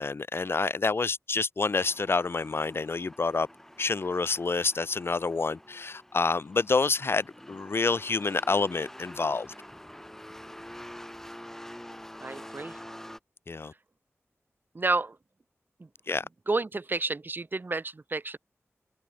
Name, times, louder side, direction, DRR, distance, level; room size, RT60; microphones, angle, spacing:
voice 1, 0.0-3.5 3.8-9.5 13.5-13.7 16.1-16.2, left 4 dB, 50° left, 1.4 m, -28 dB
sound 1, 1.7-13.2, left 1 dB, 10° left, 4.3 m, -47 dB
voice 2, 12.2-12.8 14.7-15.2 15.8-15.9 16.5-18.4, right 3 dB, 40° right, 2.7 m, -30 dB
wide cardioid pair, 100°, 5 cm